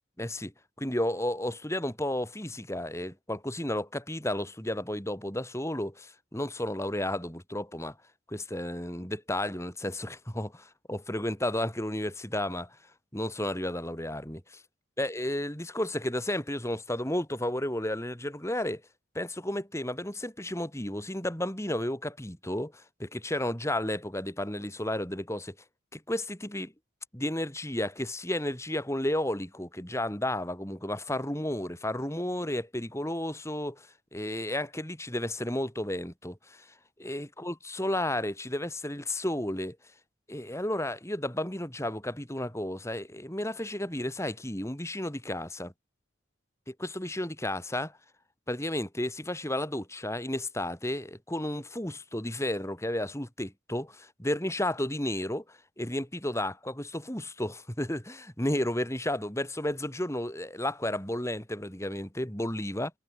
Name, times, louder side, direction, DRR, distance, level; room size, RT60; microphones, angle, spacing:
voice 1, 0.2-8.0 8.3-12.8 13.1-14.6 15.0-18.8 19.1-25.5 25.9-26.7 27.1-36.7 37.0-39.8 40.3-45.7 46.7-48.0 48.5-62.9, left 1 dB, 15° left, 5.2 m, -32 dB
head